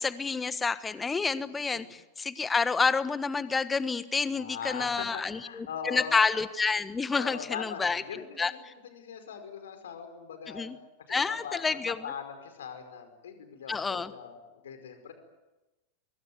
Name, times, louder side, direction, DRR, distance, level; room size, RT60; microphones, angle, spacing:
voice 1, 0.0-8.0 8.4-8.5 10.5-10.8 11.1-12.0 13.7-14.1, left 4 dB, 15° left, 15 dB, 1.3 m, -29 dB
voice 2, 4.3-6.2 7.1-10.7 11.1-15.1, left 7 dB, 65° left, 7 dB, 5.1 m, -41 dB
24.5 x 23.0 x 9.6 m, 1.1 s
figure-of-eight pair, 90°, 0 cm